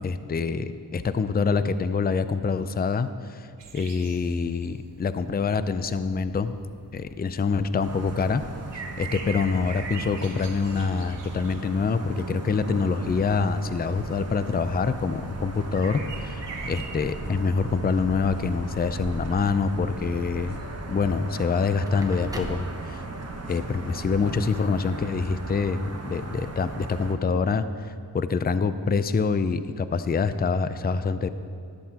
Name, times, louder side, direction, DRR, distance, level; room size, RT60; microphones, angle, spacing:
voice 1, 0.0-3.5 3.7-6.6 6.9-8.4 8.7-20.6 20.9-23.0 23.5-31.3, left 5 dB, 25° left, 12 dB, 0.4 m, -26 dB
sound 1, 3.6-17.1, right 5 dB, 80° right, 1.1 m, -43 dB
sound 2, 7.8-27.1, right 2 dB, 35° right, 0.9 m, -37 dB
Crackle, 21.7-23.4, right 1 dB, 10° right, 1.0 m, -42 dB
13.0 x 11.0 x 2.9 m, 2.4 s
wide cardioid pair, 70°, 41 cm